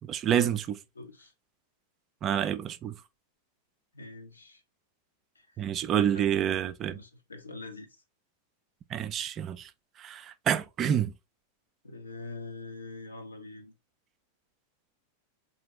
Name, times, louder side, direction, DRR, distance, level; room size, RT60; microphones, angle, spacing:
voice 1, 0.1-0.8 2.2-2.9 5.6-7.0 8.9-9.7 10.0-11.1, right 9 dB, 30° right, 0.3 m, -28 dB
voice 2, 0.9-1.3 3.9-4.6 5.4-5.6 5.9-6.4 6.8-8.0 11.8-13.7, left 3 dB, 75° left, 0.7 m, -44 dB
3.6 x 2.7 x 2.8 m
figure-of-eight pair, 90°, 0 cm